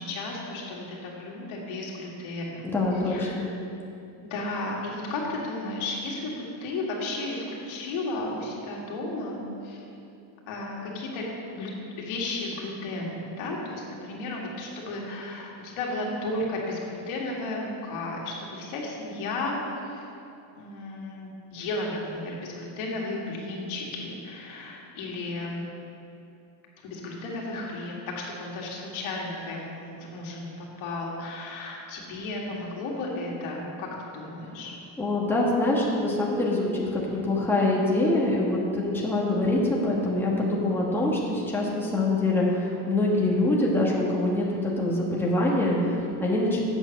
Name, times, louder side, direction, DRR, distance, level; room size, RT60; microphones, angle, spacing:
voice 1, 0.0-2.7 3.1-3.4 4.2-6.4 6.6-9.8 10.5-11.3 11.5-11.7 12.0-20.1 20.5-25.6 26.8-34.7, left 2 dB, 75° left, -2 dB, 2.1 m, -34 dB
voice 2, 2.6-3.5 35.0-46.7, left 2 dB, 5° left, -4 dB, 1.3 m, -25 dB
8.1 x 7.0 x 6.3 m, 2.7 s
cardioid pair, 140°, 48 cm